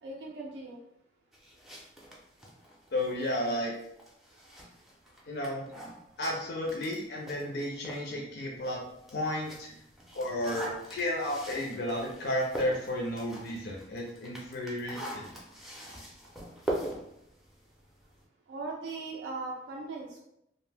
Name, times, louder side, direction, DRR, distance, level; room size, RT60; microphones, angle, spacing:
voice 1, 0.0-0.8 18.5-20.2, right 3 dB, 80° right, -1 dB, 0.4 m, -39 dB
sound 1, 1.3-8.1 8.5-18.2, right 1 dB, ahead, 0.4 m, -43 dB
voice 2, 2.9-3.7 5.3-5.7 6.2-8.8 9.1-9.8 10.1-15.4, left 1 dB, 65° left, -2 dB, 0.4 m, -33 dB
2.5 x 2.0 x 3.3 m, 0.79 s
head